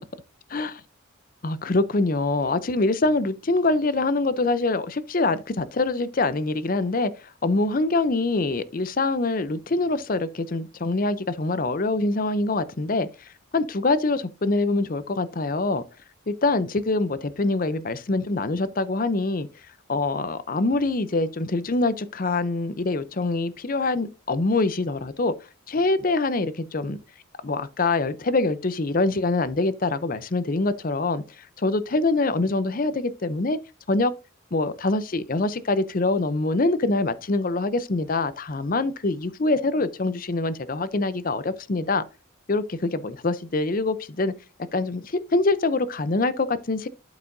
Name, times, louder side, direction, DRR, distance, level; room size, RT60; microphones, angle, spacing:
voice 1, 1.4-7.1 7.4-15.8 16.3-19.5 19.9-25.3 25.7-27.0 27.4-33.6 33.9-34.1 34.5-42.0 42.5-44.3 44.7-46.9, left 2 dB, 40° left, 0.6 m, -24 dB
12.0 x 4.9 x 2.6 m
head